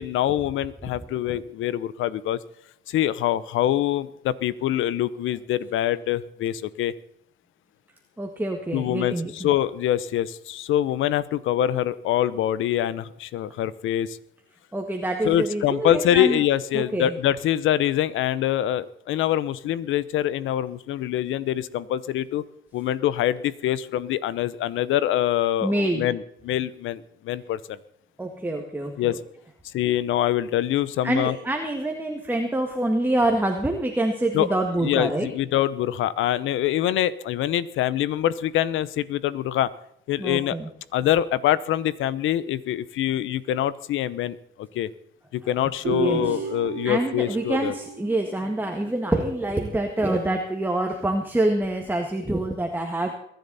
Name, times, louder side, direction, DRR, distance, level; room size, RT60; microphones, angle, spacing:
voice 1, 0.0-2.4 2.9-6.9 8.7-14.2 15.2-22.4 22.7-27.6 29.0-29.2 29.7-31.4 34.3-39.7 40.1-40.6 40.9-44.9 45.3-47.7, left 12 dB, 85° left, 18 dB, 0.9 m, -24 dB
voice 2, 8.2-9.5 14.7-16.4 16.7-17.2 25.6-26.1 28.2-29.2 31.0-35.3 40.2-40.7 45.9-46.5 46.8-53.1, right 1 dB, 10° right, 3 dB, 1.8 m, -26 dB
Guitar, 45.8-49.1, right 6 dB, 75° right, 2.2 m, -33 dB
22.5 x 10.5 x 4.2 m, 0.73 s
cardioid pair, 90°, 20 cm